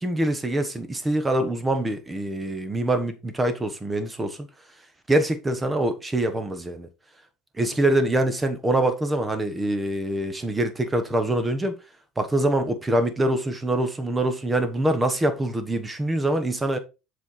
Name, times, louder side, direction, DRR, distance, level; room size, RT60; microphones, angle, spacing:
voice 1, 0.0-4.5 5.1-6.9 7.6-11.7 12.2-16.8, right 1 dB, 10° right, 1.2 m, -24 dB
7.5 x 4.6 x 4.2 m
cardioid pair, 140°, 0 cm